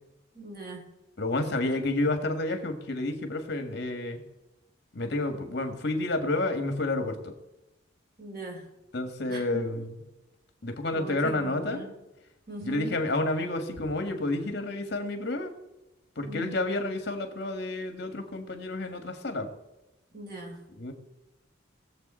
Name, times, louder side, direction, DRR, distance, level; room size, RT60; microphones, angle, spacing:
voice 1, 0.3-0.9 8.2-8.7 9.3-9.6 10.9-11.9 12.5-12.9 16.3-16.5 20.1-20.6, right 2 dB, 50° right, 0 dB, 3.8 m, -40 dB
voice 2, 1.2-4.2 4.9-7.3 8.9-10.0 10.6-11.9 12.6-15.5 16.2-19.5 20.8-20.9, left 2 dB, 55° left, 6 dB, 1.7 m, -30 dB
19.0 x 7.6 x 4.3 m, 0.96 s
head